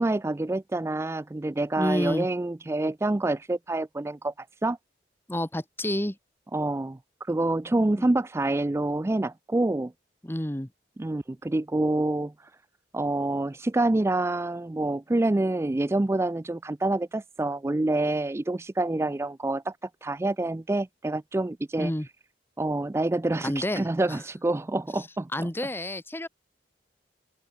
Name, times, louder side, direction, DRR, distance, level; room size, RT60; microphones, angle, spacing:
voice 1, 0.0-4.8 6.5-9.9 11.0-12.5 12.9-19.8 20.0-21.9 22.6-25.5, right 2 dB, 15° right, 0.3 m, -27 dB
voice 2, 1.8-2.3 5.3-6.2 8.0-8.1 10.2-10.7 21.8-22.1 23.4-24.2 25.3-26.3, left 1 dB, 10° left, 1.4 m, -29 dB
open air
head